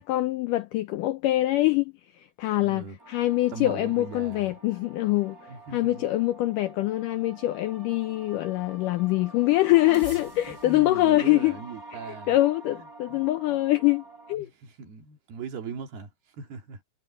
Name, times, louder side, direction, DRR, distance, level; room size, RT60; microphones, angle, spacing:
voice 1, 0.0-11.6 12.3-14.5, left 17 dB, 85° left, 1.9 m, -24 dB
voice 2, 2.6-3.0 3.5-4.5 5.5-6.1 10.5-12.4 12.8-13.2 13.5-13.6 14.4-16.8, right 5 dB, 80° right, 4.9 m, -40 dB
sound 1, 3.0-14.4, right 2 dB, 20° right, 8.2 m, -46 dB
omnidirectional pair, 4.4 m